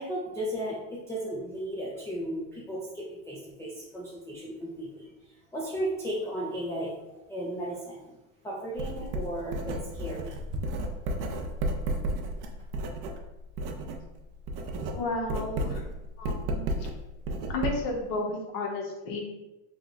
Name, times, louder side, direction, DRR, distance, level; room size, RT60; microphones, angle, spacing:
voice 1, 0.0-5.1 5.5-8.2 8.4-10.5, right 1 dB, 5° left, -6 dB, 0.5 m, -35 dB
Writing, 8.8-14.0 14.3-18.0, right 1 dB, 50° right, 0.6 m, -33 dB
voice 2, 14.9-15.8 16.2-16.9 17.5-19.2, left 2 dB, 55° left, 1 dB, 1.0 m, -33 dB
3.6 x 2.1 x 3.8 m, 1.0 s
supercardioid pair, 105°, 40 cm